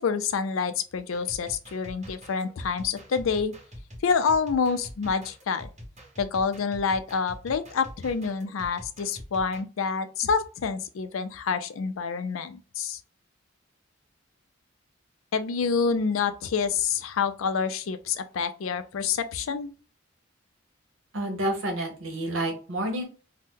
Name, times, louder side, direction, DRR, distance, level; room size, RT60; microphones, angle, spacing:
voice 1, 0.0-3.5 4.0-5.7 6.2-13.0 15.3-19.7, left 5 dB, 80° left, 0.4 m, -27 dB
sound 1, 1.1-9.6, equal, 35° right, 1.2 m, -45 dB
voice 2, 21.1-23.0, right 1 dB, 75° right, 1.0 m, -29 dB
2.7 x 2.1 x 3.5 m
head